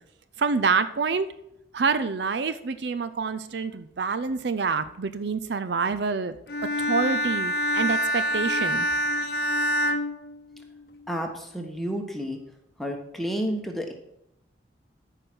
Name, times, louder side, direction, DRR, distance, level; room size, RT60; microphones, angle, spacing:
voice 1, 0.4-1.3 1.7-6.4 6.8-8.9, right 5 dB, 65° right, 12 dB, 0.5 m, -27 dB
Bowed string instrument, 6.5-11.0, equal, 55° left, 0.8 m, -26 dB
voice 2, 11.1-12.4 12.8-13.9, equal, ahead, 2 dB, 1.2 m, -30 dB
13.5 x 4.9 x 6.1 m, 0.81 s
head